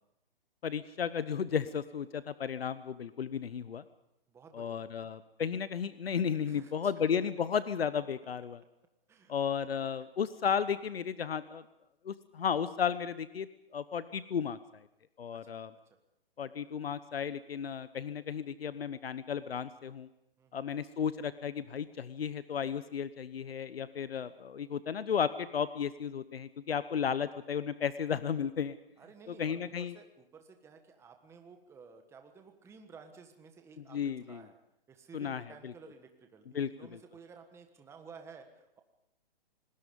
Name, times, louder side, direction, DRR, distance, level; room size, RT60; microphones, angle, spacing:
voice 1, 0.6-3.8 4.5-8.6 9.3-11.6 12.0-14.9 15.2-15.7 16.4-20.1 20.5-28.7 29.3-29.9 33.8-34.5 35.1-35.7 36.5-37.0, left 7 dB, 80° left, 14 dB, 1.0 m, -34 dB
voice 2, 4.3-5.1 6.5-6.9 9.1-9.3 9.6-9.7 10.0-10.1 15.3-15.6 20.4-20.8 29.0-34.6 34.9-38.8, right 5 dB, 10° right, 5 dB, 1.4 m, -54 dB
26.5 x 20.0 x 5.4 m, 0.83 s
hypercardioid pair, 145°, 30 cm